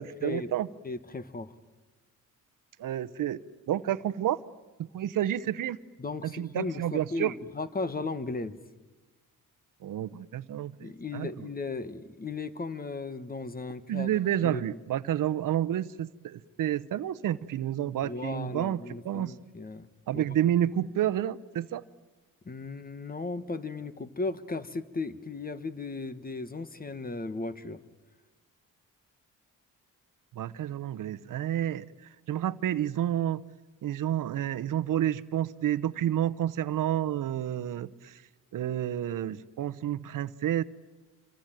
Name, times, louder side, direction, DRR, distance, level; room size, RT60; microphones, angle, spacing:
voice 1, 0.0-0.7 2.8-3.4 3.7-4.4 4.8-5.8 6.2-7.3 9.8-10.9 11.1-11.5 13.9-19.3 20.1-21.8 30.3-31.9 32.3-33.4 33.8-38.2 38.5-40.6, right 11 dB, 75° right, 13 dB, 0.9 m, -30 dB
voice 2, 0.8-1.5 6.0-8.6 10.8-14.1 14.4-14.7 18.0-19.9 20.1-20.3 22.4-27.8, left 3 dB, 25° left, 13 dB, 1.4 m, -36 dB
27.0 x 24.0 x 9.0 m, 1.2 s
cardioid pair, 100°, 33 cm